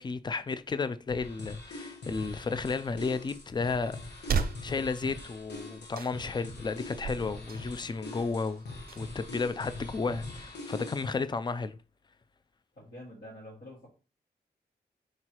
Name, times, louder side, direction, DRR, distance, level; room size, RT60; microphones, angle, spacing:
voice 1, 0.0-8.6 9.0-11.8, left 4 dB, 25° left, 0.3 m, -33 dB
sound 1, 1.1-11.2, left 2 dB, 75° left, 1.2 m, -43 dB
sound 2, 2.8-10.3, right 5 dB, 60° right, 0.4 m, -39 dB
voice 2, 12.8-13.9, left 1 dB, 60° left, 2.0 m, -47 dB
4.5 x 3.9 x 2.9 m
wide cardioid pair, 90°, 17 cm